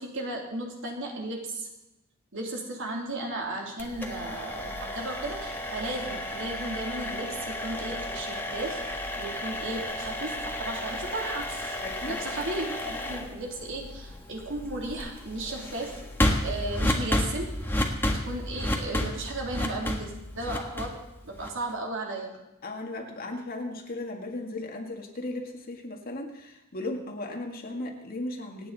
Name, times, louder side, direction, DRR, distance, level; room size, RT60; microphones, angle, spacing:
voice 1, 0.0-1.7 2.3-8.8 9.2-11.8 12.0-16.0 16.4-17.6 18.1-22.3, right 2 dB, 65° right, 0 dB, 3.2 m, -35 dB
sound 1, 3.8-21.7, left 1 dB, 10° left, 1.7 m, -32 dB
voice 2, 11.8-12.2 22.6-28.7, left 2 dB, 45° left, 1 dB, 1.9 m, -36 dB
27.0 x 9.3 x 4.2 m, 0.94 s
head